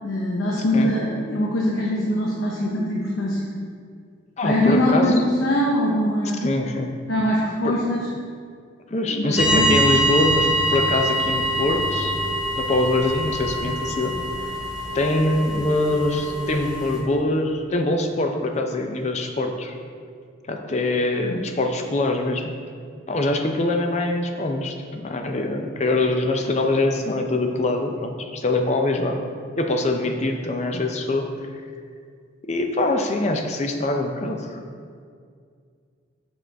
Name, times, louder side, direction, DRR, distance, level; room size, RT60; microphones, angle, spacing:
voice 1, 0.0-3.5 4.4-6.4 7.1-8.1 9.0-9.8 21.2-21.4, left 1 dB, 85° left, -3 dB, 0.8 m, -22 dB
voice 2, 4.4-5.1 6.4-6.9 7.6-7.8 8.9-12.1 12.6-14.5 14.9-19.8 20.5-22.6 23.1-29.2 29.5-31.3 32.5-34.6, left 2 dB, 35° left, 4 dB, 0.5 m, -23 dB
sound 1, 9.4-17.0, equal, 5° right, 0.7 m, -24 dB
6.3 x 6.0 x 3.4 m, 2.2 s
head